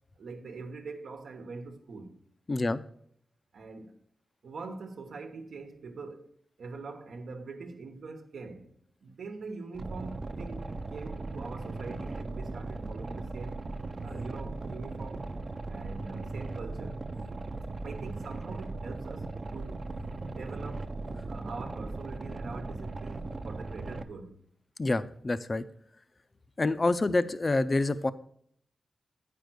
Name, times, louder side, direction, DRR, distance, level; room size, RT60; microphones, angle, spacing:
voice 1, 0.1-2.2 3.5-3.9 4.4-6.3 6.6-13.7 14.0-15.3 15.7-17.0 17.8-19.8 20.2-20.9 21.3-24.4, right 4 dB, 90° right, 1.1 m, -43 dB
voice 2, 2.5-2.8 24.8-25.6 26.6-28.1, left 2 dB, 30° left, 0.4 m, -27 dB
Boat Water vehicle, 9.7-24.0, right 3 dB, 40° right, 0.5 m, -38 dB
9.1 x 5.2 x 6.2 m
wide cardioid pair, 125°, 0 cm